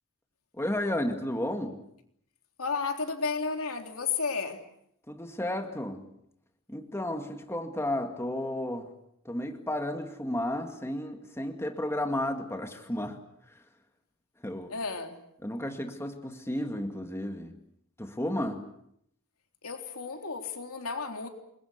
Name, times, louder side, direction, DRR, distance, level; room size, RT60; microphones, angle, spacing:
voice 1, 0.6-1.8 5.1-6.1 6.7-8.9 9.3-13.2 14.4-14.7 15.4-17.5 18.0-18.6, left 1 dB, 10° left, 5 dB, 2.2 m, -32 dB
voice 2, 2.6-4.6 14.7-15.2 19.6-21.3, left 4 dB, 75° left, 4 dB, 3.7 m, -32 dB
28.5 x 21.5 x 8.2 m, 0.74 s
head